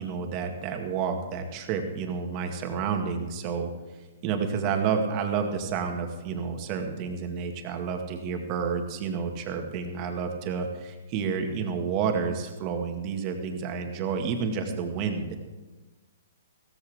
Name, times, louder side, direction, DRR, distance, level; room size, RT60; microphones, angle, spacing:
voice 1, 0.0-3.7 4.2-15.4, right 6 dB, 35° right, 4 dB, 1.8 m, -30 dB
16.0 x 14.0 x 3.5 m, 1.2 s
hypercardioid pair, 145°, 0 cm